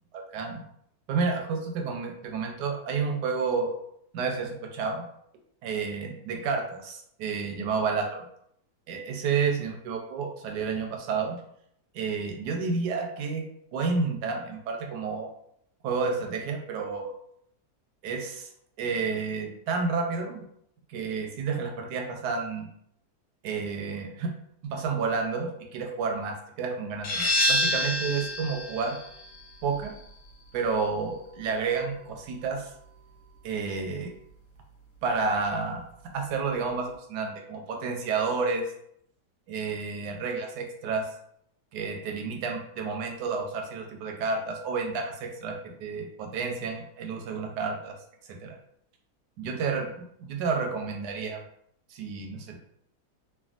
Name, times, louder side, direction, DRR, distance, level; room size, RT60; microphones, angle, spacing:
voice 1, 0.1-0.6 1.1-3.8 4.1-5.0 5.6-8.3 8.9-11.4 11.9-13.4 13.7-15.3 15.8-17.1 18.0-18.5 18.8-20.4 20.9-22.7 23.4-24.3 24.6-29.0 29.6-29.9 30.5-32.7 33.4-34.1 35.0-35.8 36.1-38.6 39.5-41.1 41.7-47.9 48.4-48.5 49.4-49.9 50.2-51.4 51.9-52.6, right 5 dB, 85° right, 3 dB, 1.2 m, -30 dB
sound 1, 27.0-32.5, left 1 dB, 70° left, 1.2 m, -30 dB
3.3 x 2.2 x 2.4 m, 0.71 s
omnidirectional pair, 1.7 m